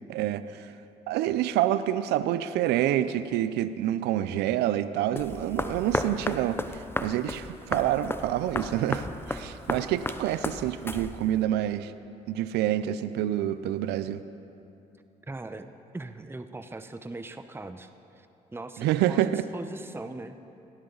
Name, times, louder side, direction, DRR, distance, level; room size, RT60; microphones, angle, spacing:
voice 1, 0.1-0.7 1.1-11.9 12.3-14.2 18.8-19.4, right 12 dB, 75° right, 13 dB, 0.6 m, -27 dB
sound 1, 5.2-11.4, left 2 dB, 15° left, 0.9 m, -34 dB
voice 2, 15.2-15.7 15.9-17.9 18.2-18.3 18.5-20.4, right 2 dB, 15° right, 9 dB, 0.9 m, -40 dB
18.0 x 18.0 x 4.0 m, 2.7 s
hypercardioid pair, 55°, 17 cm